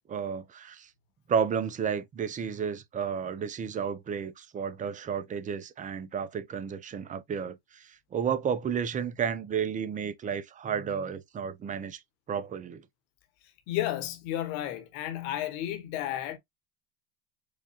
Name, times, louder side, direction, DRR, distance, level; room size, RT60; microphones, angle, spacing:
voice 1, 0.1-0.9 1.3-12.0 12.3-12.8, right 7 dB, 20° right, 0.4 m, -32 dB
voice 2, 13.7-16.4, left 13 dB, 60° left, 1.1 m, -32 dB
4.8 x 2.2 x 2.9 m
hypercardioid pair, 95°, 45 cm